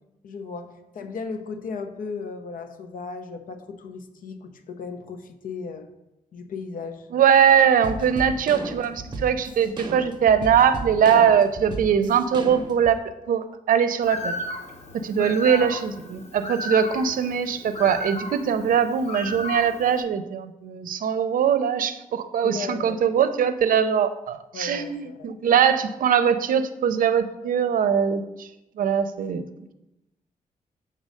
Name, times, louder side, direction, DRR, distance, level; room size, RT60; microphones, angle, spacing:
voice 1, 0.2-0.7 0.9-5.9 6.3-7.1 15.3-15.8 22.4-23.0 24.5-25.3, left 4 dB, 75° left, 7 dB, 0.8 m, -35 dB
voice 2, 7.1-13.0 13.3-14.4 15.0-28.5 28.8-29.4, right 8 dB, 75° right, 10 dB, 0.5 m, -21 dB
sound 1, 7.8-13.0, right 3 dB, 30° right, 0.8 m, -35 dB
Bird, 14.0-20.0, left 2 dB, 50° left, 1.0 m, -34 dB
6.4 x 3.9 x 6.3 m, 0.93 s
wide cardioid pair, 145°, 14 cm